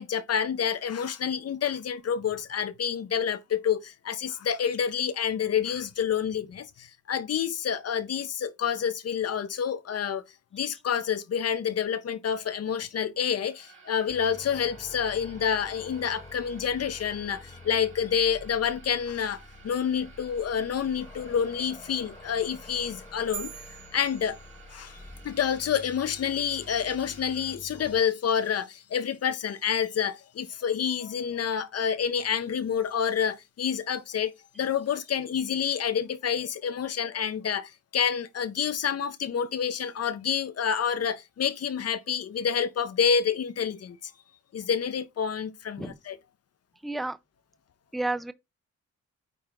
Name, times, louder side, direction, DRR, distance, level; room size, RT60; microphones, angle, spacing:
voice 1, 0.0-10.2 10.5-23.6 23.9-24.4 24.7-44.1 44.5-46.2, left 8 dB, 55° left, 0.7 m, -28 dB
sound 1, 13.4-27.6, right 5 dB, 40° right, 2.2 m, -54 dB
sound 2, 14.1-28.0, left 3 dB, 20° left, 0.8 m, -48 dB
sound 3, 23.3-25.1, right 8 dB, 65° right, 2.3 m, -43 dB
voice 2, 46.8-47.2 47.9-48.3, right 2 dB, ahead, 0.3 m, -30 dB
9.2 x 3.5 x 3.7 m
wide cardioid pair, 145°, 31 cm